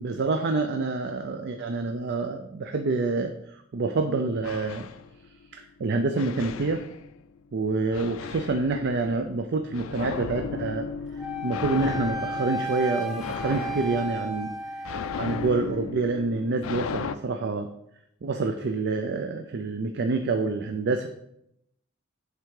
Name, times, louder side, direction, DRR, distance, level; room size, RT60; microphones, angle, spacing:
voice 1, 0.0-4.9 5.8-6.8 7.5-10.9 11.4-14.5 15.2-17.7 18.2-21.1, right 3 dB, 55° right, 6 dB, 0.4 m, -27 dB
sound 1, 4.4-5.6 6.2-7.4 7.9-17.2, left 5 dB, 75° left, 0.4 m, -36 dB
Wind instrument woodwind instrument, 11.2-15.5, equal, ahead, 0.7 m, -33 dB
8.0 x 3.4 x 4.8 m, 0.79 s
head